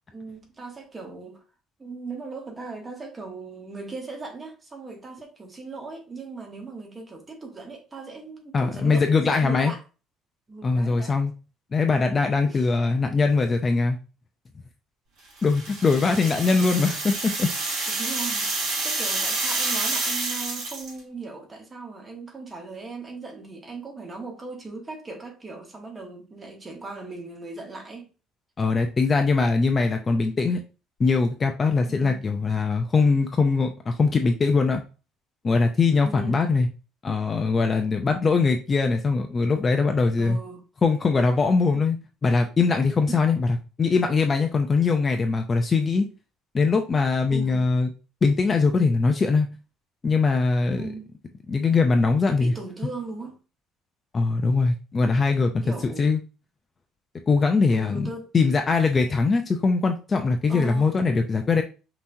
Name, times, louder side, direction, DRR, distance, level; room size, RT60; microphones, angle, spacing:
voice 1, 0.1-1.4 1.8-9.8 10.5-11.2 12.4-12.7 17.9-28.1 31.9-32.2 36.0-36.5 40.2-40.6 41.7-41.8 43.1-43.2 47.3-47.7 50.8-51.1 52.4-53.4 55.6-56.1 57.7-58.3 60.5-61.0, right 3 dB, 20° right, 1.0 m, -38 dB
voice 2, 8.5-9.7 10.6-11.3 11.7-14.0 15.4-17.5 28.6-30.6 31.0-34.8 35.4-36.7 37.0-40.4 40.8-42.0 42.2-46.1 46.5-47.9 48.2-49.5 50.0-50.8 51.5-52.5 54.1-55.6 56.0-56.2 57.3-61.6, left 4 dB, 20° left, 0.4 m, -22 dB
sound 1, 15.4-21.0, right 3 dB, 65° right, 2.5 m, -28 dB
5.5 x 2.9 x 2.6 m
cardioid pair, 160°, 0 cm